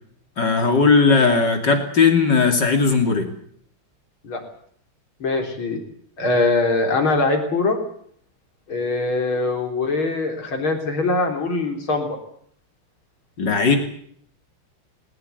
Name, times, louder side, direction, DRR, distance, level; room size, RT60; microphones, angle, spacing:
voice 1, 0.4-3.3 13.4-13.8, left 4 dB, 55° left, 5 dB, 3.5 m, -17 dB
voice 2, 5.2-5.8 6.2-7.8 8.7-12.2, left 3 dB, 80° left, 4 dB, 4.5 m, -22 dB
20.5 x 19.5 x 8.3 m, 0.64 s
omnidirectional pair, 2.2 m